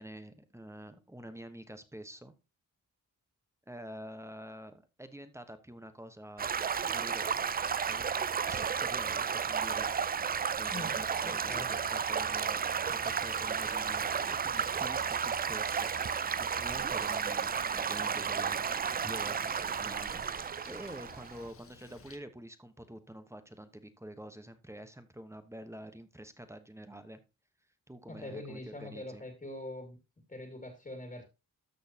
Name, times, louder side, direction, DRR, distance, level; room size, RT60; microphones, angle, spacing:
voice 1, 0.0-2.3 3.7-7.3 7.9-18.6 18.9-27.2 27.9-29.2, right 1 dB, 10° right, 10 dB, 1.1 m, -48 dB
Stream / Gurgling / Trickle dribble, 6.4-21.5, right 6 dB, 30° right, 0.4 m, -33 dB
voice 2, 11.3-11.7 28.1-30.0 30.3-31.2, left 1 dB, 25° left, 4 dB, 2.3 m, -43 dB
Bird, 12.9-22.2, left 5 dB, 40° left, 1.2 m, -54 dB
13.0 x 6.4 x 2.8 m, 0.27 s
wide cardioid pair, 100°, 34 cm